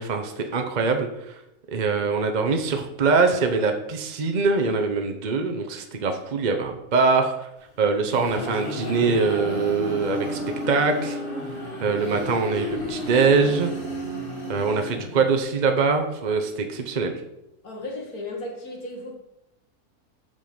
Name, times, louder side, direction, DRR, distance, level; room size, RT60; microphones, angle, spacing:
voice 1, 0.0-1.3 1.7-7.5 7.8-10.4 10.7-11.2 11.8-13.7 14.5-17.2, right 4 dB, 40° right, 4 dB, 0.7 m, -23 dB
sound 1, 7.7-15.5, left 1 dB, 35° left, 2.1 m, -32 dB
voice 2, 17.6-19.1, left 2 dB, 75° left, 0 dB, 2.3 m, -35 dB
8.1 x 5.5 x 5.2 m, 0.85 s
omnidirectional pair, 1.6 m